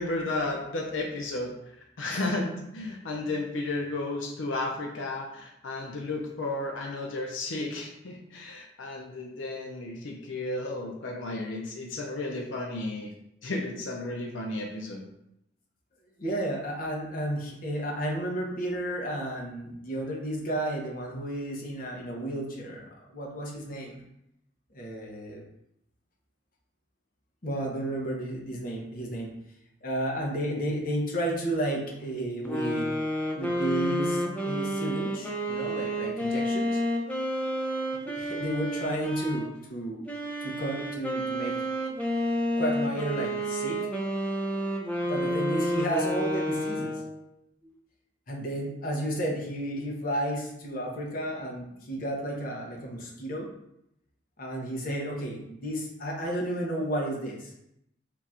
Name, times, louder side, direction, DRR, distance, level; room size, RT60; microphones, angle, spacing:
voice 1, 0.0-1.5 2.0-13.1 13.4-15.0, left 2 dB, 85° left, 1 dB, 0.6 m, -33 dB
voice 2, 16.2-24.0 24.7-25.4 27.4-29.3 29.8-32.9 33.4-36.8 38.1-40.1 40.4-41.5 42.6-43.9 45.0-46.9 47.6-47.7 48.3-53.5 54.4-57.5, right 1 dB, 50° left, -1 dB, 0.8 m, -32 dB
sound 1, 32.4-39.5 40.1-47.2, equal, 5° left, 0.4 m, -30 dB
3.8 x 2.4 x 4.2 m, 0.80 s
head